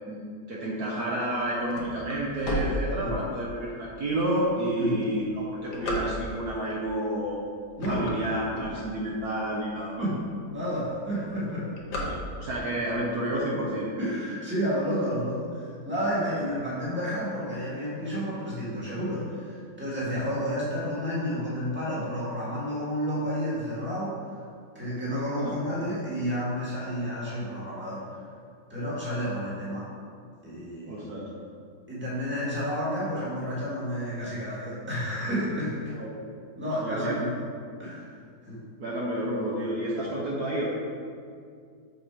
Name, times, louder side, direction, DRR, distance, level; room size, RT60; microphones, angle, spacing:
voice 1, 0.5-7.4 7.9-10.1 12.0-13.9 25.4-25.5 30.8-31.3 36.0-36.1 36.8-37.1 38.8-40.7, right 1 dB, 65° right, -5 dB, 1.2 m, -30 dB
sound 1, 1.3-3.5 4.1-4.2 4.9-6.6 7.2-7.4 7.7-9.3 9.8-9.9 10.1-10.2 10.5-10.8 11.1-12.7, left 1 dB, 70° left, 1.6 m, -33 dB
voice 2, 7.8-8.2 10.0-11.7 14.0-24.1 24.7-28.2 28.7-29.9 30.4-31.1 31.9-36.0 36.6-37.5 37.8-38.1 38.4-38.6, equal, 5° right, -8 dB, 1.4 m, -31 dB
6.3 x 4.2 x 4.5 m, 2.2 s
omnidirectional pair, 2.0 m